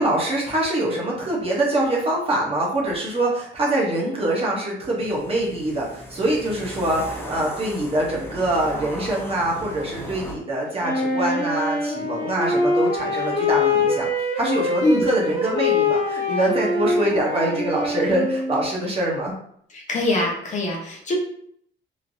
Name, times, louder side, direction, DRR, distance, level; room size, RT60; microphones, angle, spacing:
voice 1, 0.0-14.1 14.4-19.3, right 1 dB, 30° right, -3 dB, 0.8 m, -24 dB
sound 1, 5.0-10.3, equal, 10° left, 0.4 m, -36 dB
Wind instrument woodwind instrument, 10.8-18.8, left 2 dB, 60° left, 1.3 m, -24 dB
voice 2, 19.7-21.1, left 1 dB, 35° left, -2 dB, 0.8 m, -23 dB
3.1 x 2.5 x 2.6 m, 0.66 s
wide cardioid pair, 180°, 21 cm